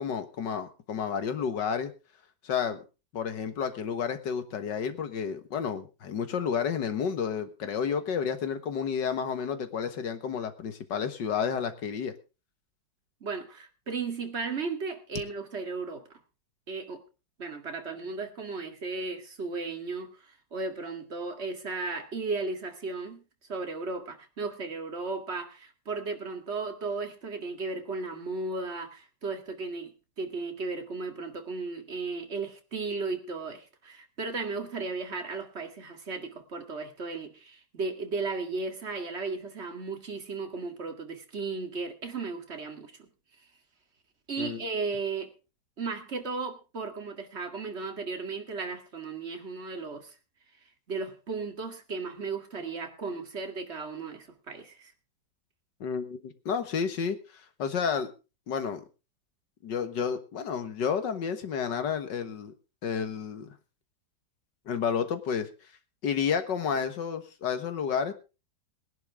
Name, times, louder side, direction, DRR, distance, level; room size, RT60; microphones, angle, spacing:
voice 1, 0.0-1.9 2.4-2.8 3.1-12.1 44.4-44.6 55.8-58.1 58.5-58.8 59.6-62.5 62.8-63.5 64.7-65.5 66.0-68.1, left 7 dB, 70° left, 10 dB, 2.0 m, -31 dB
voice 2, 13.2-16.2 16.7-17.0 17.4-23.2 23.5-43.1 44.3-45.3 45.8-50.1 50.9-54.9, right 4 dB, 35° right, 5 dB, 2.2 m, -35 dB
19.5 x 11.0 x 3.6 m, 0.31 s
omnidirectional pair, 2.0 m